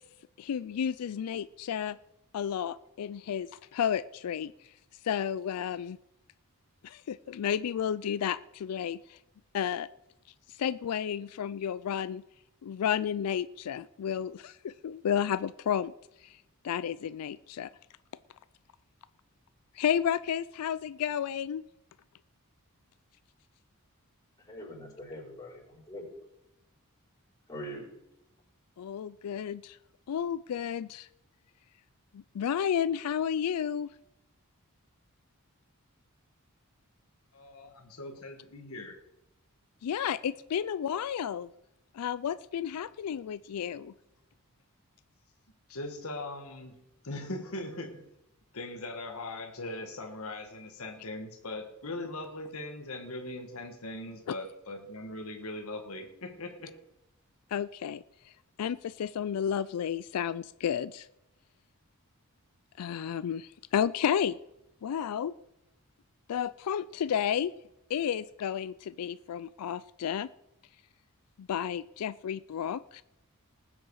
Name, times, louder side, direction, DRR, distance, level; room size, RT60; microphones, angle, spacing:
voice 1, 0.4-2.0 2.3-4.5 5.0-6.0 6.8-9.2 9.5-9.9 10.6-12.2 12.6-15.9 16.2-16.4 16.6-17.7 19.8-21.6 28.8-29.8 30.1-31.1 32.1-33.9 39.8-41.5 41.9-43.9 57.5-58.0 58.6-61.1 62.8-64.4 64.8-65.3 66.3-67.5 67.9-70.3 71.4-73.0, left 8 dB, 90° left, 16 dB, 0.4 m, -32 dB
voice 2, 24.4-26.1 27.5-27.9, equal, 15° left, -5 dB, 5.3 m, -43 dB
voice 3, 37.3-39.0 45.7-48.1 48.5-56.7, left 2 dB, 70° left, 4 dB, 1.5 m, -40 dB
19.5 x 7.8 x 4.7 m, 0.90 s
head